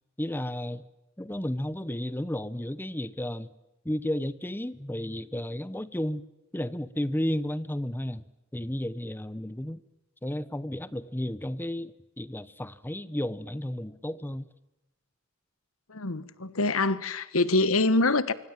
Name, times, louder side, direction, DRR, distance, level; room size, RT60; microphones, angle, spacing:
voice 1, 0.2-0.9 1.2-3.5 3.8-6.2 6.5-8.2 8.5-9.8 10.2-14.4, left 1 dB, 10° left, 0.9 m, -33 dB
voice 2, 15.9-18.3, left 2 dB, 90° left, 1.3 m, -25 dB
25.5 x 24.5 x 7.4 m
head